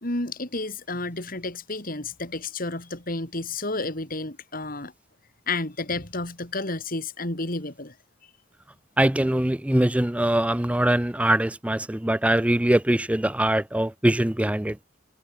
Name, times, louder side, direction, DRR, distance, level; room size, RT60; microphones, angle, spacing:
voice 1, 0.0-4.9 5.5-7.9, left 2 dB, 50° left, 4.3 m, -31 dB
voice 2, 9.0-14.7, right 1 dB, 5° right, 0.5 m, -22 dB
head